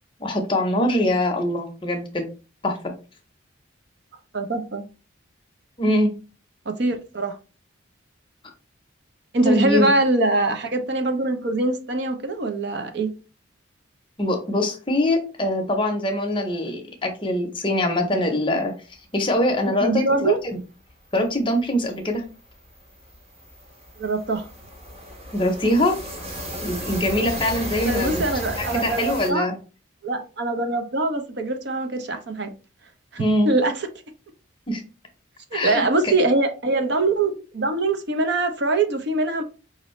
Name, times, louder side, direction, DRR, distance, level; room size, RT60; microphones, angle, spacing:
voice 1, 0.2-2.2 2.6-2.8 5.8-6.1 9.4-9.9 14.2-18.7 19.1-20.4 21.1-22.2 25.3-26.0 26.6-28.2 28.6-29.5 33.2-33.5 34.7-34.8 35.5-36.1, left 1 dB, 25° left, 0.7 m, -23 dB
voice 2, 4.3-4.8 6.7-7.4 9.3-13.1 19.8-20.4 24.0-24.5 27.8-29.5 30.0-32.5 33.1-33.9 35.5-39.4, right 2 dB, 55° right, 0.6 m, -23 dB
sound 1, 20.9-21.0 21.3-21.5 21.8-29.3, equal, 30° right, 1.1 m, -34 dB
5.0 x 2.6 x 3.1 m
head